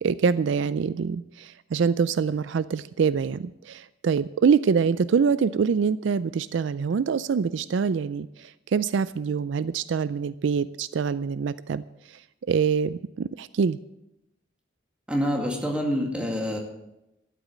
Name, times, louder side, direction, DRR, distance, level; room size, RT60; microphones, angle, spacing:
voice 1, 0.0-11.8 12.1-12.2 12.5-13.8, right 6 dB, 70° right, 16 dB, 0.4 m, -25 dB
voice 2, 15.1-16.6, equal, 5° right, 0 dB, 2.2 m, -26 dB
13.0 x 8.3 x 7.3 m, 0.89 s
head